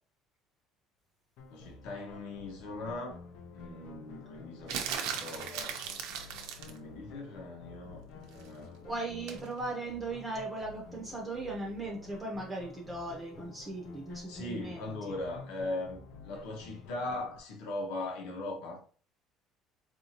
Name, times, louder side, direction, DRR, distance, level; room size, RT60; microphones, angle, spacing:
sound 1, 1.4-17.4, left 4 dB, 70° left, 0.7 m, -51 dB
voice 1, 1.5-3.2 3.5-5.8 6.0-6.3 6.6-8.9 14.1-18.8, left 2 dB, 90° left, 1.1 m, -40 dB
sound 2, 4.7-6.8 9.3-9.5, right 7 dB, 80° right, 0.6 m, -37 dB
voice 2, 8.8-15.2, right 2 dB, 10° right, 0.7 m, -38 dB
4.3 x 2.7 x 2.9 m
cardioid pair, 170°, 0 cm